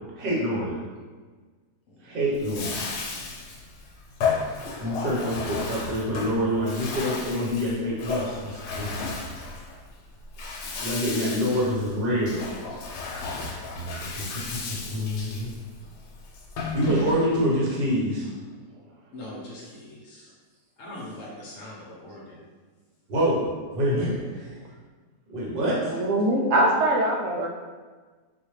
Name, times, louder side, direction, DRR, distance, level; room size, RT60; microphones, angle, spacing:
voice 1, 0.2-0.7 2.0-2.8 4.8-9.2 10.8-12.4 13.7-15.5 16.7-18.3 23.1-23.5 23.7-24.5 25.3-25.9, equal, 45° right, -5 dB, 0.9 m, -26 dB
Bathtub (filling or washing), 2.3-17.5, left 4 dB, 85° left, 1.2 m, -34 dB
voice 2, 19.1-20.3 20.8-22.4, left 1 dB, 60° left, -4 dB, 0.9 m, -41 dB
voice 3, 25.8-27.5, right 1 dB, 75° right, 1 dB, 1.1 m, -22 dB
4.0 x 2.2 x 3.1 m, 1.4 s
omnidirectional pair, 1.7 m